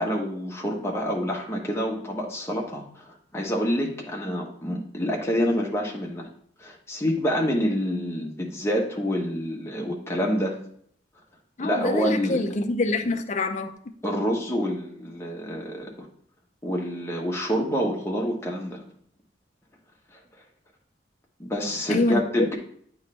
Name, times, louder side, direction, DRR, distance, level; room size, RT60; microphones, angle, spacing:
voice 1, 0.0-6.3 6.6-10.6 11.6-12.4 14.0-16.1 16.6-18.8 21.4-22.5, equal, 15° left, 1.0 m, -27 dB
voice 2, 11.6-13.7 21.9-22.2, left 2 dB, 40° left, 0.5 m, -25 dB
9.5 x 3.2 x 3.2 m
head